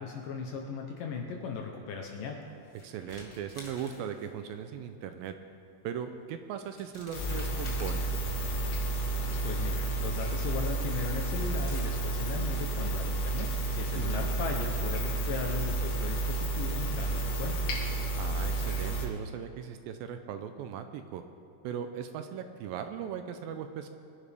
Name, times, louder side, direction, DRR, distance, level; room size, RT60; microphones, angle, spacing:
voice 1, 0.0-2.4 9.4-17.6, left 5 dB, 70° left, 1 dB, 2.4 m, -37 dB
sound 1, 2.4-4.5 5.9-6.0 6.5-8.5 9.6-9.7 10.8-10.9 11.1-11.8, left 1 dB, 35° left, 0.5 m, -50 dB
voice 2, 2.8-5.4 5.8-8.1 14.0-14.3 18.2-21.2 21.6-23.9, right 8 dB, 80° right, 8 dB, 2.4 m, -38 dB
sound 2, 7.1-19.1, right 2 dB, 90° left, 3.6 m, -31 dB
22.5 x 10.5 x 3.5 m, 2.4 s
omnidirectional pair, 4.3 m